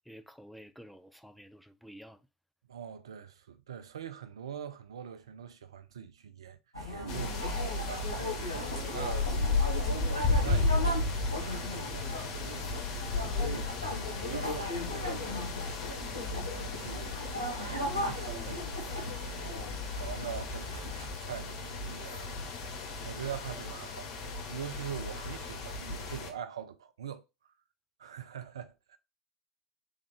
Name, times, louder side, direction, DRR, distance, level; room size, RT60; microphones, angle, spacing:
voice 1, 0.1-2.2, equal, ahead, 0.4 m, -51 dB
voice 2, 2.7-6.6 6.9-19.3 19.6-27.2 28.0-29.0, right 8 dB, 70° right, 0.5 m, -44 dB
sound 1, 6.7-21.1, left 2 dB, 90° right, 1.5 m, -37 dB
sound 2, 7.1-26.3, left 3 dB, 50° left, 1.1 m, -34 dB
3.5 x 3.5 x 3.5 m
figure-of-eight pair, 75°, 3 cm